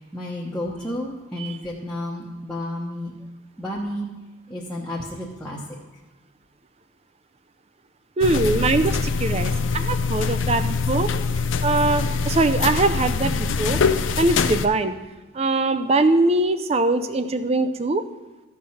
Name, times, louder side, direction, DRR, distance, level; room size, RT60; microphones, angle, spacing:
voice 1, 0.0-3.1 3.6-4.1 4.5-5.6, left 1 dB, 5° left, -7 dB, 0.9 m, -31 dB
sound 1, 8.2-14.7, left 4 dB, 65° left, 0.5 m, -24 dB
voice 2, 8.2-11.1 11.6-13.8 14.2-15.0 15.3-18.0, right 2 dB, 30° right, 11 dB, 0.4 m, -22 dB
14.0 x 4.8 x 5.5 m, 1.2 s
head